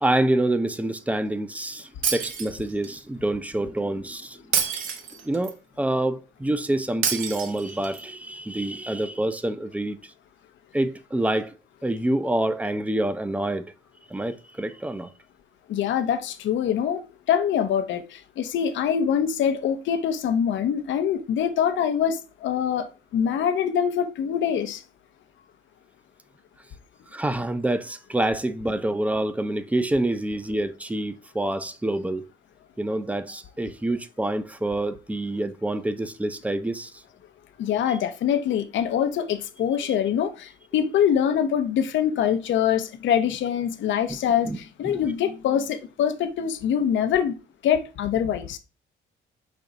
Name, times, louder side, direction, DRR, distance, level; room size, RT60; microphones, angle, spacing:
voice 1, 0.0-4.4 5.2-10.1 10.7-11.5 11.8-13.7 14.1-15.1 27.1-32.3 32.8-36.9 37.9-38.0 39.8-39.9 44.5-44.6 44.8-45.0, right 1 dB, 5° right, 0.5 m, -27 dB
Shatter, 2.0-3.0 4.5-5.5 7.0-8.0, right 7 dB, 80° right, 0.8 m, -27 dB
voice 2, 15.7-24.8 37.6-47.4 47.6-48.6, left 8 dB, 70° left, 0.6 m, -24 dB
5.1 x 2.3 x 3.9 m
cardioid pair, 90°, 20 cm